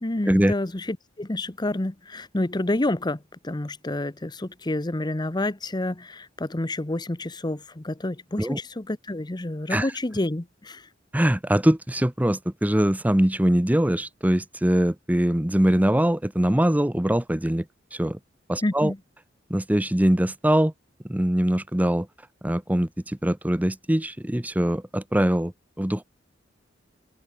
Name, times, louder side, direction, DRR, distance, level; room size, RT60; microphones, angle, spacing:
voice 1, 0.0-3.2 3.4-10.9 18.6-19.0, left 1 dB, 25° left, 0.9 m, -29 dB
voice 2, 11.1-17.6 17.9-18.2 18.5-18.9 19.5-20.7 21.1-22.1 22.4-26.0, right 1 dB, 10° right, 0.8 m, -22 dB
open air
head